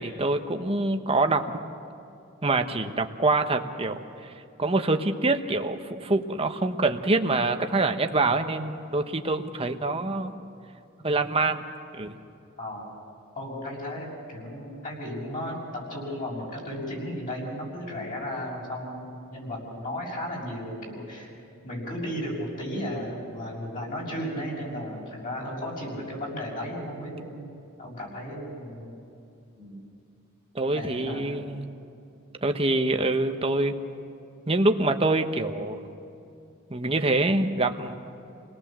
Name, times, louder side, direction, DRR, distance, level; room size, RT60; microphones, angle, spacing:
voice 1, 0.0-1.4 2.4-4.3 4.6-10.3 11.0-11.6 11.9-12.1 30.5-31.7 32.4-33.8 34.5-35.8 36.7-38.0, right 2 dB, 25° right, 6 dB, 1.1 m, -25 dB
voice 2, 12.6-12.9 13.4-15.6 15.9-21.3 21.6-27.5 27.8-29.0 29.6-29.8 30.6-31.4, equal, 40° left, -3 dB, 6.9 m, -34 dB
28.5 x 18.5 x 7.5 m, 2.7 s
head